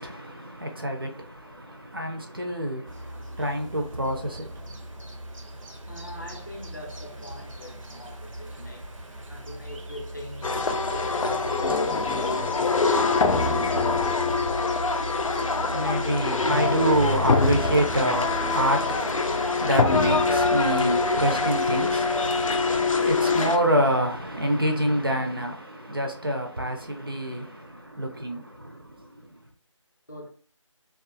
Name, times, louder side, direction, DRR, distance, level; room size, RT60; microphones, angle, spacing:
voice 1, 0.0-5.0 15.5-29.3, right 1 dB, 45° right, 0.5 m, -27 dB
sound 1, 2.9-22.8, right 1 dB, 80° right, 0.7 m, -40 dB
voice 2, 5.9-8.9 9.3-12.4 25.8-26.1 30.1-30.3, left 1 dB, 35° left, 0.6 m, -43 dB
sound 2, 10.4-23.6, left 4 dB, 85° left, 0.4 m, -24 dB
2.4 x 2.3 x 2.5 m
figure-of-eight pair, 180°, 17 cm